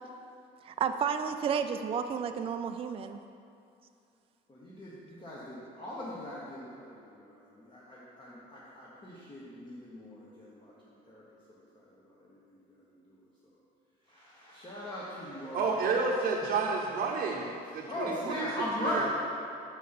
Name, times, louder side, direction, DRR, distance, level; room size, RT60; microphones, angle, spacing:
voice 1, 0.6-3.2, right 7 dB, 35° right, 7 dB, 0.4 m, -31 dB
voice 2, 4.5-13.6 14.0-15.8 17.6-19.1, left 1 dB, 30° left, -6 dB, 1.3 m, -40 dB
voice 3, 15.5-18.5 18.8-19.1, right 4 dB, 60° right, -3 dB, 0.9 m, -30 dB
6.5 x 5.2 x 5.7 m, 2.5 s
cardioid pair, 110°, 17 cm